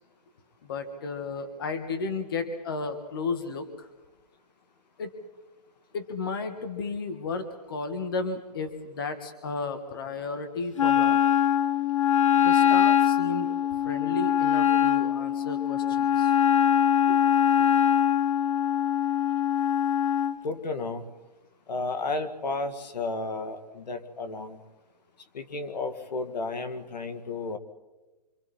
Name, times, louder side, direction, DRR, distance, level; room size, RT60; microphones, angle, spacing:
voice 1, 0.6-3.9 5.0-5.2 5.9-11.2 12.3-13.5 13.8-16.3 17.1-17.2 17.6-17.7, left 4 dB, 35° left, 8 dB, 1.7 m, -33 dB
Wind instrument woodwind instrument, 10.8-20.4, left 9 dB, 50° left, 0.8 m, -23 dB
voice 2, 20.4-21.1 21.7-24.6 25.3-27.6, left 3 dB, 85° left, 8 dB, 2.2 m, -32 dB
28.5 x 26.5 x 4.3 m, 1.1 s
hypercardioid pair, 180°, 21 cm